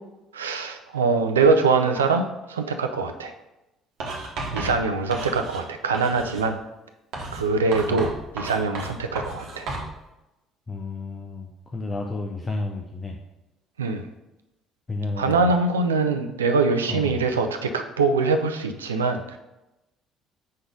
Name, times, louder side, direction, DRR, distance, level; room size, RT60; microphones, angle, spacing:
voice 1, 0.3-3.3 4.5-6.6 7.3-8.1 8.3-9.7 13.8-14.0 15.2-19.4, right 4 dB, 80° right, 6 dB, 0.4 m, -23 dB
Writing, 4.0-5.7 5.9-6.5 7.1-9.9, right 2 dB, 55° right, 1.3 m, -33 dB
voice 2, 10.7-13.2 14.9-15.5 16.9-17.2, left 3 dB, 25° left, 1 dB, 0.7 m, -31 dB
5.3 x 4.0 x 5.0 m, 0.96 s
figure-of-eight pair, 50°, 0 cm